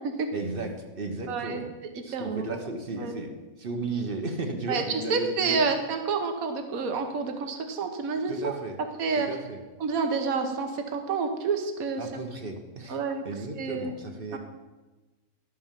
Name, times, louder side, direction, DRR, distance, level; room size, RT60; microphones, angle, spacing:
voice 1, 0.3-1.7 2.0-5.6 8.2-8.8 9.2-9.6 12.0-14.4, right 2 dB, 40° right, 4 dB, 1.2 m, -35 dB
voice 2, 1.3-1.6 2.1-2.6 3.0-3.1 4.7-8.5 8.8-9.3 9.8-12.0 12.9-13.2 13.6-13.9 14.3-14.4, right 4 dB, 65° right, 6 dB, 1.5 m, -29 dB
12.0 x 4.7 x 7.3 m, 1.2 s
omnidirectional pair, 1.6 m